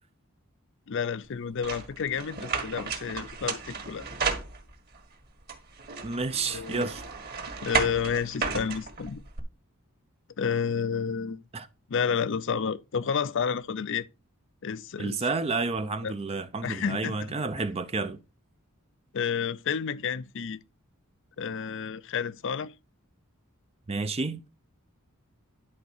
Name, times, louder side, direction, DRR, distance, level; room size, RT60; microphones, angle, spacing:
voice 1, 0.9-4.1 6.5-6.9 7.6-9.2 10.4-11.4 11.9-14.1 14.6-15.2 16.0-16.1 16.6-17.2 19.1-20.6 21.4-22.7, left 6 dB, 55° left, 0.5 m, -30 dB
sound 1, 1.6-5.0 5.5-9.4, right 5 dB, 45° right, 2.0 m, -33 dB
voice 2, 6.0-7.0 11.5-11.7 15.0-18.2 23.9-24.5, right 3 dB, 25° right, 0.5 m, -30 dB
10.5 x 4.0 x 6.5 m
head